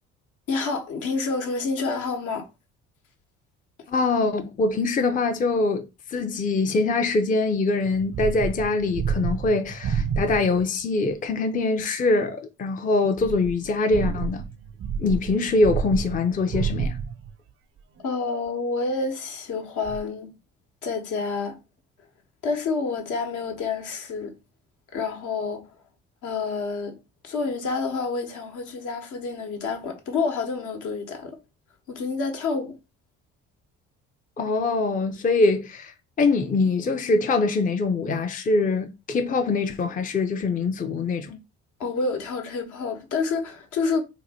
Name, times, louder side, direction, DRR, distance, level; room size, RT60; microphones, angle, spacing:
voice 1, 0.5-2.5 18.0-20.3 20.8-21.6 22.4-24.3 24.9-25.7 26.2-27.0 27.2-31.4 31.9-32.7 41.8-44.0, left 4 dB, 65° left, 1.1 m, -28 dB
voice 2, 3.9-14.4 15.0-17.0 34.4-41.4, left 3 dB, 25° left, 0.5 m, -23 dB
sound 1, 7.9-10.7 13.2-17.3 18.0-18.1 19.8-20.0, right 6 dB, 40° right, 0.5 m, -29 dB
2.9 x 2.2 x 4.1 m
hypercardioid pair, 55°, 33 cm